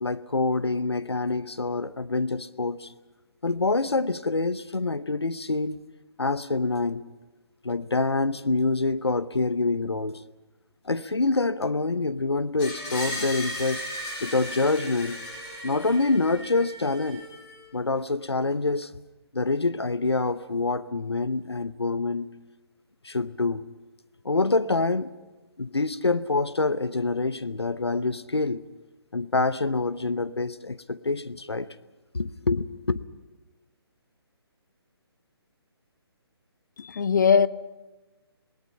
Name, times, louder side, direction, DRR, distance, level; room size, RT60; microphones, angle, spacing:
voice 1, 0.0-2.9 3.4-5.8 6.2-7.0 7.6-10.2 10.8-13.8 14.2-15.2 15.6-17.2 17.7-18.9 19.3-22.3 23.0-23.7 24.2-25.1 25.6-28.6 29.1-31.7 32.1-33.0, left 3 dB, 75° left, 0.9 m, -26 dB
Screech, 12.6-17.5, equal, 20° left, 7.7 m, -36 dB
voice 2, 36.8-37.5, left 6 dB, 45° left, 0.7 m, -20 dB
27.5 x 21.0 x 5.7 m
figure-of-eight pair, 140°, 14 cm